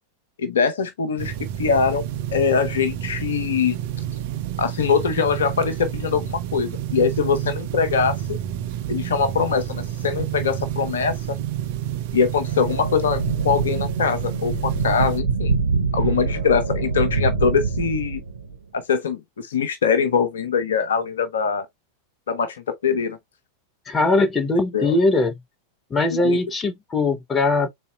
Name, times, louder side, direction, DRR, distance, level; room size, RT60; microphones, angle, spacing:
voice 1, 0.4-2.0 2.3-3.8 4.6-8.4 8.9-11.4 12.1-15.5 15.9-18.2 18.7-21.7 22.3-23.2 24.7-25.0 26.1-26.4, left 6 dB, 65° left, 0.7 m, -22 dB
sound 1, 1.2-15.2, right 11 dB, 50° right, 0.5 m, -29 dB
sound 2, 12.4-18.5, right 4 dB, 75° right, 0.8 m, -25 dB
voice 2, 23.9-25.4 25.9-27.7, left 2 dB, 20° left, 0.9 m, -20 dB
4.0 x 4.0 x 2.4 m
figure-of-eight pair, 90°, 0 cm